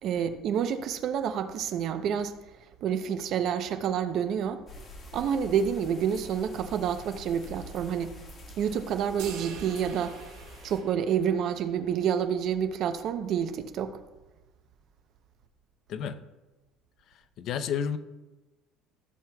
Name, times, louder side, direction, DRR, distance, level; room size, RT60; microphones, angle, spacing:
voice 1, 0.0-2.4 2.8-4.6 5.1-8.2 8.6-10.2 10.6-14.0, right 8 dB, 45° right, 0.6 m, -28 dB
sound 1, 4.7-10.8, left 1 dB, 30° left, 1.7 m, -46 dB
sound 2, 9.2-11.8, right 6 dB, 75° right, 1.5 m, -45 dB
voice 2, 17.4-18.0, left 7 dB, 50° left, 0.6 m, -30 dB
14.5 x 7.3 x 2.3 m
cardioid pair, 150°, 0 cm